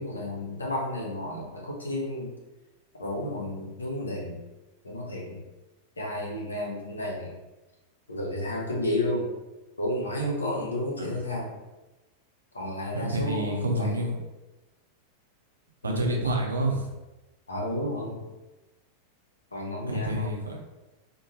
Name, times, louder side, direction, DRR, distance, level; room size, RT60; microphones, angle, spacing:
voice 1, 0.0-2.3 3.0-4.4 4.8-5.4 6.0-7.3 8.1-9.3 9.8-11.6 12.5-14.0 15.8-16.1 17.5-18.3 19.5-20.3, left 1 dB, 75° left, -3 dB, 0.7 m, -32 dB
voice 2, 12.9-14.2 15.8-16.9 19.9-20.6, right 1 dB, 75° right, 0 dB, 0.5 m, -28 dB
2.6 x 2.2 x 2.9 m, 1.1 s
figure-of-eight pair, 90°, 0 cm